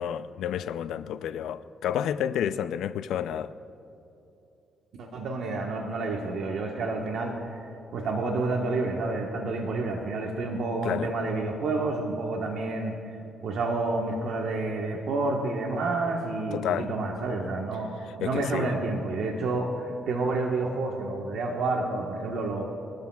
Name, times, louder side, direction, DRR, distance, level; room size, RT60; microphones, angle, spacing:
voice 1, 0.0-3.5 10.8-11.1 16.5-16.9 18.2-18.7, left 9 dB, 80° left, 0.4 m, -30 dB
voice 2, 5.0-13.0 13.4-17.9 18.2-22.6, right 3 dB, 70° right, 1.3 m, -29 dB
24.0 x 13.0 x 2.4 m
cardioid pair, 90°, 0 cm